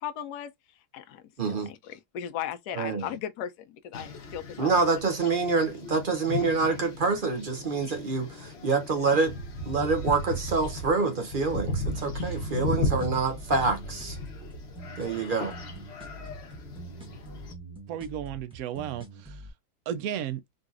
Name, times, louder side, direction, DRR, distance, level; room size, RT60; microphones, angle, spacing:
voice 1, 0.0-0.5 0.9-1.2 1.5-4.7, left 10 dB, 80° left, 1.1 m, -37 dB
voice 2, 1.4-1.7 2.8-3.1 4.6-9.4 9.7-14.2 15.0-15.5, right 4 dB, 45° right, 0.8 m, -26 dB
sound 1, 3.9-17.5, left 1 dB, 50° left, 0.9 m, -36 dB
sound 2, 11.5-19.5, right 2 dB, 5° right, 0.9 m, -45 dB
voice 3, 17.9-19.4 19.9-20.4, right 10 dB, 75° right, 1.0 m, -34 dB
3.9 x 2.4 x 2.5 m
omnidirectional pair, 1.7 m